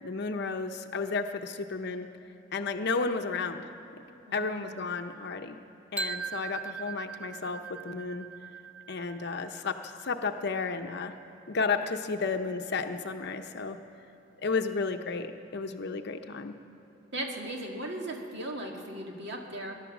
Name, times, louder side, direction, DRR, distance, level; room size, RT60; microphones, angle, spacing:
voice 1, 0.0-2.1 2.5-3.6 4.3-5.6 5.9-8.3 8.9-11.1 11.5-13.8 14.4-16.5, left 4 dB, 60° left, 6 dB, 0.7 m, -32 dB
voice 2, 4.3-4.8 17.1-19.7, right 1 dB, 60° right, 1 dB, 2.0 m, -37 dB
sound 1, 6.0-11.9, right 5 dB, 10° right, 0.5 m, -41 dB
21.5 x 11.0 x 6.1 m, 3.0 s
head